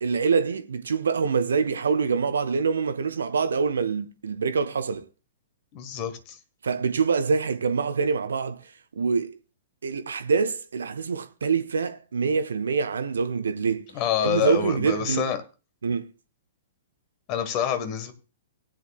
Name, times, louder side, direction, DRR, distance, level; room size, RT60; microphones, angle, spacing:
voice 1, 0.0-5.1 6.6-8.6 9.0-9.3 9.8-13.8 14.2-15.3 15.8-16.1, right 5 dB, 65° right, 0.7 m, -25 dB
voice 2, 5.7-6.4 13.9-15.4 17.3-18.1, left 9 dB, 35° left, 1.5 m, -27 dB
18.5 x 9.1 x 2.4 m
figure-of-eight pair, 110°, 0 cm